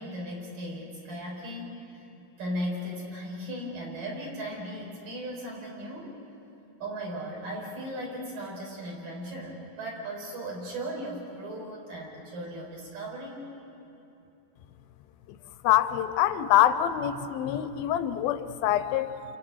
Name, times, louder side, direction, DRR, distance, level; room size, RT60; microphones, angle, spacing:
voice 1, 0.0-2.0 2.4-6.2 6.8-13.4, equal, 55° right, -3 dB, 6.8 m, -37 dB
voice 2, 15.6-19.1, left 11 dB, 75° left, 11 dB, 2.3 m, -25 dB
29.0 x 29.0 x 6.4 m, 2.8 s
omnidirectional pair, 4.8 m